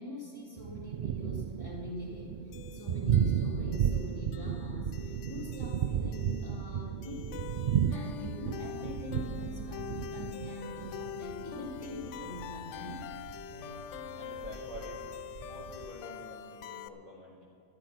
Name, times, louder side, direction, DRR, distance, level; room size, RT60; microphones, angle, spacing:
voice 1, 0.0-7.5 7.9-13.1, left 1 dB, 20° left, -5 dB, 3.5 m, -43 dB
Thunder, 0.6-15.9, right 9 dB, 60° right, 0.5 m, -34 dB
sound 1, 2.5-16.9, left 9 dB, 80° left, 0.9 m, -44 dB
sound 2, 8.9-10.2 11.1-12.4 13.0-13.7 14.4-16.0, right 4 dB, 75° right, 1.4 m, -52 dB
voice 2, 13.5-13.9 14.1-15.0 15.4-17.4, left 1 dB, 35° left, -5 dB, 2.0 m, -48 dB
13.5 x 11.5 x 5.9 m, 2.5 s
omnidirectional pair, 1.2 m